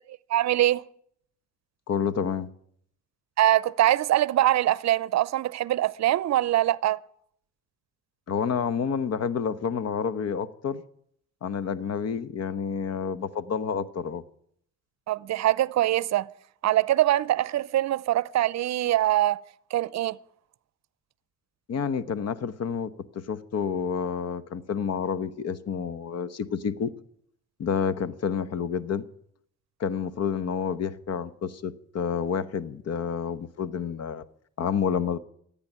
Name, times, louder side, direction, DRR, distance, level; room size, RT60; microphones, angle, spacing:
voice 1, 0.3-0.8 3.4-7.0 15.1-16.3 16.6-19.4 19.7-20.2, right 14 dB, 65° right, 0.6 m, -23 dB
voice 2, 1.9-2.5 8.3-10.8 11.4-14.2 21.7-26.9 27.6-29.0 29.8-34.2 34.6-35.2, left 7 dB, 55° left, 1.1 m, -29 dB
15.0 x 8.8 x 10.0 m
cardioid pair, 90°, 30 cm